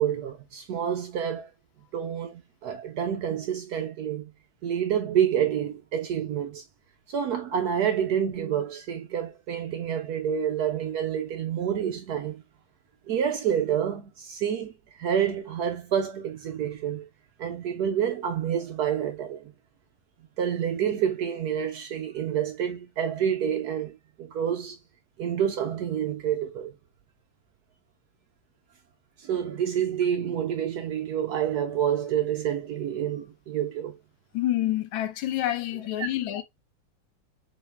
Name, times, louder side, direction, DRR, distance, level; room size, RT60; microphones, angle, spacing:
voice 1, 0.0-1.5 1.9-4.3 4.6-6.6 7.1-12.4 13.1-17.1 17.4-19.5 20.4-24.8 25.2-26.7 29.2-34.0 36.0-36.1, right 9 dB, 70° right, 0.9 m, -28 dB
voice 2, 34.3-36.4, left 13 dB, 85° left, 1.5 m, -28 dB
4.0 x 2.8 x 3.3 m
omnidirectional pair, 2.1 m